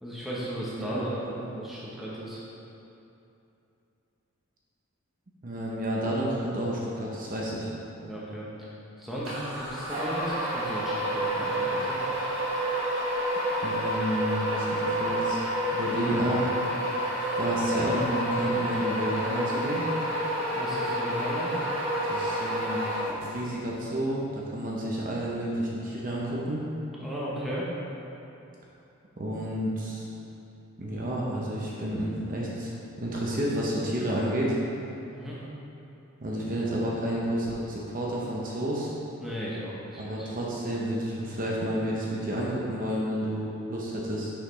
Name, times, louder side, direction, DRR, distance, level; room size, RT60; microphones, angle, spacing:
voice 1, 0.0-1.1 1.6-2.4 7.9-8.7 9.0-12.0 20.5-21.5 27.0-27.7 35.1-35.4 39.2-40.5, equal, ahead, -8 dB, 0.9 m, -36 dB
voice 2, 0.8-1.5 5.4-7.7 13.6-15.4 15.7-16.4 17.4-19.9 22.0-22.8 23.2-26.6 29.2-30.0 30.8-32.7 33.0-34.5 36.2-38.9 40.0-44.3, right 1 dB, 40° right, -4 dB, 0.7 m, -30 dB
sound 1, 9.2-23.5, equal, 80° right, 1.4 m, -29 dB
6.6 x 5.6 x 3.2 m, 2.8 s
head